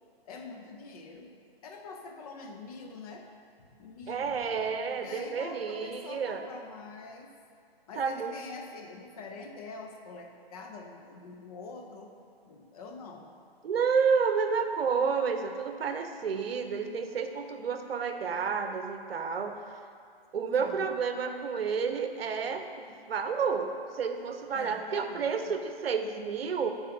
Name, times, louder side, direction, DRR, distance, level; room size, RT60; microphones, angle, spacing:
voice 1, 0.2-1.3 1.6-3.3 3.6-4.4 4.9-7.3 7.9-12.1 12.4-13.3 20.5-20.9 24.5-25.5, left 4 dB, 40° left, 3 dB, 0.8 m, -45 dB
voice 2, 4.1-6.4 8.0-8.3 13.6-19.6 20.3-26.7, right 6 dB, 70° right, 7 dB, 0.7 m, -30 dB
6.2 x 4.1 x 5.7 m, 2.2 s
hypercardioid pair, 140°, 31 cm